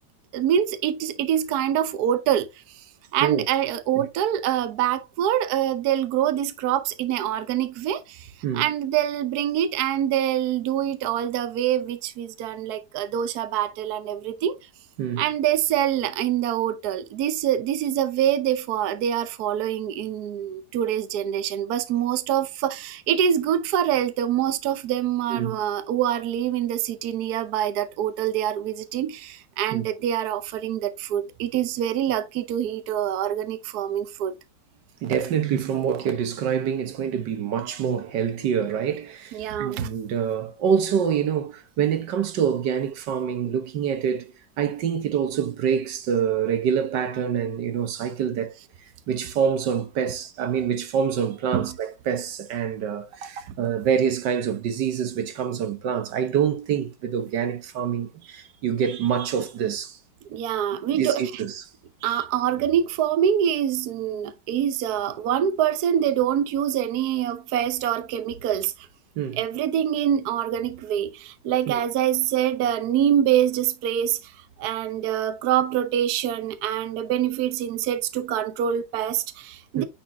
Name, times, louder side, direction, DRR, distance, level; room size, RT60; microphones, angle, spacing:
voice 1, 0.3-2.5 2.7-2.8 3.1-14.6 15.2-34.3 39.3-39.9 51.5-51.7 60.3-61.4 62.0-68.9 69.4-74.3 74.6-79.8, right 10 dB, 70° right, 1.2 m, -25 dB
voice 2, 35.0-48.5 49.1-60.0 60.9-61.5 62.0-62.2 69.2-69.4 71.7-71.8 79.8-79.9, right 8 dB, 90° right, 1.7 m, -26 dB
9.8 x 4.4 x 2.7 m
omnidirectional pair, 1.8 m